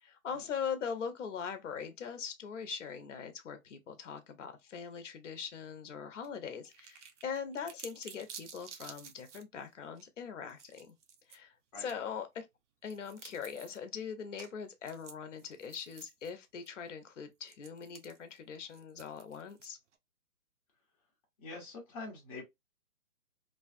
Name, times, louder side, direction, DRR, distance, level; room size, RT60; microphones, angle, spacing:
voice 1, 0.0-10.9 11.3-12.5 12.8-19.8, left 6 dB, 55° left, 0.7 m, -41 dB
sound 1, 6.2-6.3 6.6-9.4 10.0-10.1 10.5-11.4 11.9-12.0 12.9-13.8 14.4-14.5 14.8-16.3 16.7-16.8 17.5-20.0, right 6 dB, 55° right, 0.5 m, -52 dB
voice 2, 21.4-22.4, left 3 dB, 25° left, 1.0 m, -45 dB
2.5 x 2.3 x 2.4 m
hypercardioid pair, 150°, 44 cm